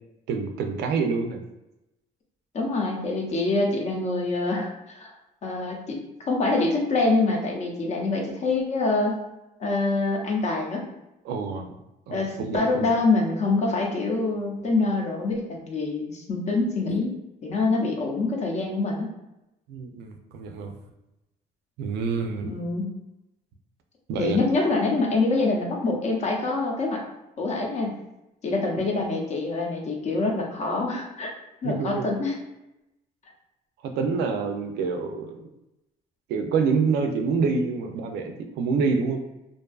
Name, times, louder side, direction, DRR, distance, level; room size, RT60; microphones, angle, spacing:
voice 1, 0.3-1.4 11.3-11.7 12.1-12.9 19.7-20.7 21.8-22.5 24.1-24.4 31.6-32.1 33.8-35.5 36.3-39.2, right 5 dB, 80° right, 5 dB, 0.4 m, -27 dB
voice 2, 2.5-5.1 5.4-9.2 9.6-10.9 12.1-19.1 22.5-22.9 24.2-27.0 27.4-27.9 28.4-31.3 31.6-32.4, left 3 dB, 45° left, 0 dB, 0.6 m, -25 dB
2.5 x 2.3 x 2.3 m, 0.93 s
cardioid pair, 110°, 17 cm